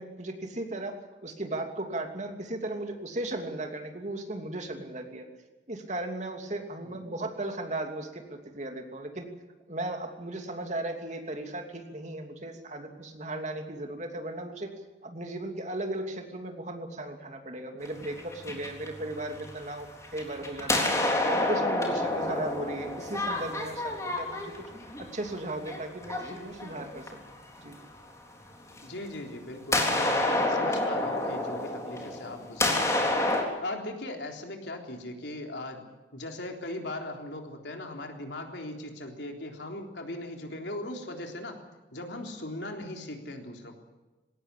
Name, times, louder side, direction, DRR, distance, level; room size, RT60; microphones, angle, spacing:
voice 1, 0.0-5.3 5.7-9.3 9.7-14.7 15.0-24.5 25.0-27.8, right 2 dB, 40° right, 4 dB, 2.9 m, -36 dB
sound 1, 17.9-19.6 20.0-27.3 28.8-28.9 29.7-33.4, left 2 dB, 15° left, 3.8 m, -28 dB
voice 2, 28.8-33.1 33.6-35.8 36.1-41.6 41.9-43.8, left 1 dB, 75° left, 3 dB, 3.7 m, -39 dB
20.5 x 18.0 x 8.4 m, 1.1 s
head